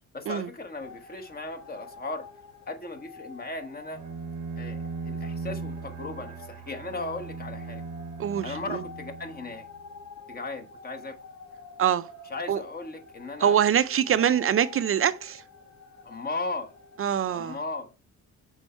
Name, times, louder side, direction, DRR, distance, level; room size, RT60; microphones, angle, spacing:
voice 1, 0.1-2.3 2.7-4.0 4.6-7.8 8.4-9.7 10.3-11.2 12.3-13.6 14.2-14.3 16.0-16.7 17.3-17.9, left 3 dB, 30° left, 1.2 m, -36 dB
sound 1, 0.8-17.2, left 4 dB, 65° left, 3.1 m, -49 dB
Bowed string instrument, 3.9-9.8, right 4 dB, 90° right, 0.9 m, -38 dB
voice 2, 8.2-8.8 11.8-12.1 12.5-12.6 13.4-15.4 17.0-17.6, right 9 dB, 45° right, 0.5 m, -24 dB
6.2 x 4.4 x 4.4 m
cardioid pair, 90°, 30 cm